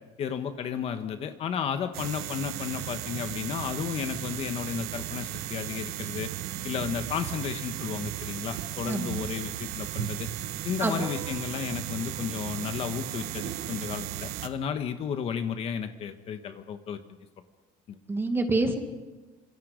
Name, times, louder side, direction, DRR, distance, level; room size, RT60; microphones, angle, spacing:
voice 1, 0.2-6.3 6.6-10.3 10.6-17.0 17.9-18.0, left 7 dB, 40° left, 8 dB, 1.3 m, -33 dB
sound 1, 1.9-14.5, right 12 dB, 75° right, 1.4 m, -35 dB
voice 2, 8.9-9.2 10.8-11.1 18.1-18.8, right 2 dB, 15° right, 5 dB, 1.9 m, -27 dB
26.5 x 25.5 x 5.2 m, 1.2 s
cardioid pair, 175°, 16 cm